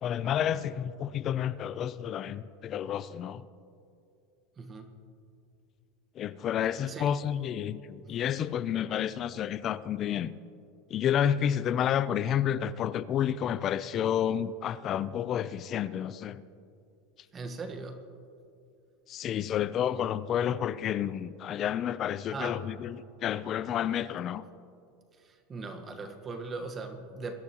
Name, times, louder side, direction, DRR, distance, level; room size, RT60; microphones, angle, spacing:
voice 1, 0.0-3.4 6.2-10.3 10.9-16.4 19.1-24.4, left 9 dB, 35° left, 0.4 m, -30 dB
voice 2, 4.6-4.9 6.9-7.1 17.3-18.0 22.3-22.6 25.2-27.3, right 3 dB, 25° right, 1.3 m, -39 dB
22.0 x 12.0 x 3.0 m
supercardioid pair, 140°, 0 cm